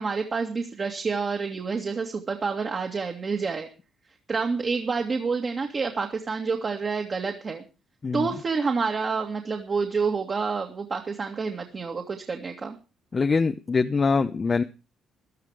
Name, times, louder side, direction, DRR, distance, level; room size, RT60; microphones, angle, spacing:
voice 1, 0.0-3.7 4.3-7.6 8.1-12.8, right 4 dB, 40° right, 3 dB, 2.3 m, -28 dB
voice 2, 13.1-14.6, left 4 dB, 35° left, 8 dB, 0.9 m, -23 dB
15.0 x 12.5 x 5.0 m, 0.32 s
cardioid pair, 90°, 0 cm